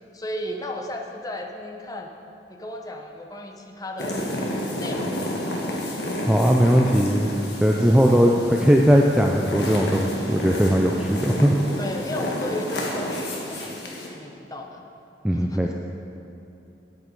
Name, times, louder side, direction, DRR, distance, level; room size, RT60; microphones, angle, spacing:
voice 1, 0.1-2.1 2.5-4.2 4.8-5.5 8.5-8.7 11.8-14.8 15.3-15.7, left 1 dB, 20° left, 2 dB, 0.7 m, -35 dB
sound 1, 4.0-14.1, left 1 dB, 65° left, 1.4 m, -30 dB
voice 2, 6.3-7.3 7.6-11.6 15.2-15.7, equal, 5° right, 0 dB, 0.4 m, -19 dB
8.9 x 8.7 x 4.7 m, 2.7 s
head